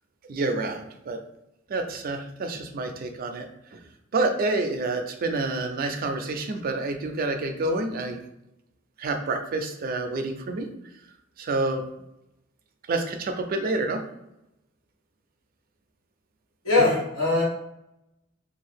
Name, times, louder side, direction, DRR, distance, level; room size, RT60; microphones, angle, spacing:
voice 1, 0.3-1.2 1.7-3.8 4.1-8.2 9.0-10.7 11.4-11.8 12.9-14.0, right 2 dB, 45° right, 6 dB, 0.4 m, -28 dB
voice 2, 16.6-17.4, left 2 dB, 85° left, -6 dB, 1.4 m, -21 dB
2.6 x 2.4 x 3.4 m, 0.84 s
head